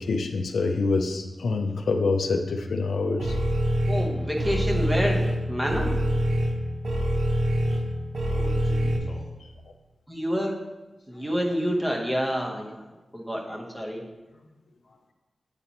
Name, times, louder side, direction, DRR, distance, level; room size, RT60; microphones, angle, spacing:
voice 1, 0.0-3.3, left 3 dB, 90° left, 5 dB, 0.4 m, -26 dB
sound 1, 3.2-9.0, equal, 65° right, 0.8 m, -25 dB
voice 2, 3.9-5.2 5.5-5.9 10.1-10.5 11.1-12.8 13.1-14.0, equal, 10° right, 0 dB, 0.9 m, -28 dB
voice 3, 8.3-9.4 11.1-11.3 14.3-15.0, left 2 dB, 40° left, 2 dB, 0.8 m, -46 dB
8.8 x 4.0 x 2.9 m, 1.1 s
wide cardioid pair, 105°, 0 cm